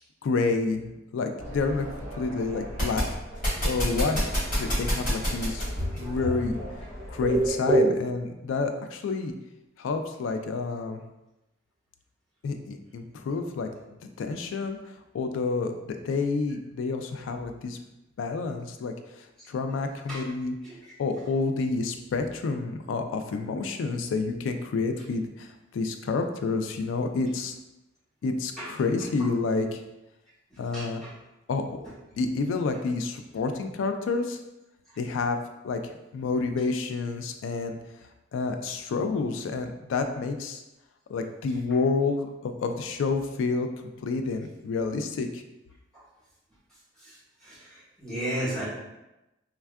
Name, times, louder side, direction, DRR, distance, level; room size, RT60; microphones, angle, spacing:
voice 1, 0.2-1.9 2.1-3.0 3.6-4.2 4.5-5.6 5.9-6.6 7.1-9.3 9.8-11.0 12.4-13.7 14.0-17.8 18.2-20.6 21.0-27.5 28.2-29.8 30.6-31.0 31.5-31.6 32.2-34.4 35.0-35.4 35.6-35.8 36.1-37.8 38.3-40.6 41.1-43.7 44.0-45.4, left 4 dB, 90° left, 7 dB, 0.3 m, -29 dB
sound 1, 1.4-7.5, equal, 45° left, 1.5 m, -31 dB
voice 2, 5.8-6.1 7.0-7.9 20.1-20.2 28.6-28.7 30.7-30.8 47.4-47.5 48.0-48.6, right 2 dB, 5° left, -11 dB, 1.1 m, -27 dB
3.4 x 2.2 x 2.2 m, 0.95 s
head